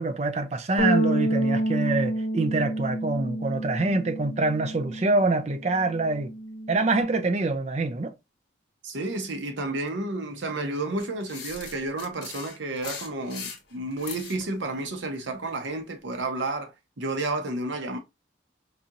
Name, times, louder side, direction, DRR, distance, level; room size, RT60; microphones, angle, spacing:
voice 1, 0.0-6.3 6.7-8.1, right 3 dB, 35° right, 0.4 m, -25 dB
sound 1, 0.8-5.3 5.6-7.0, right 1 dB, 90° left, 0.7 m, -29 dB
voice 2, 8.8-18.0, right 2 dB, 80° right, 0.8 m, -31 dB
sound 2, 11.0-14.5, left 5 dB, 60° left, 1.2 m, -39 dB
4.1 x 2.8 x 2.4 m
head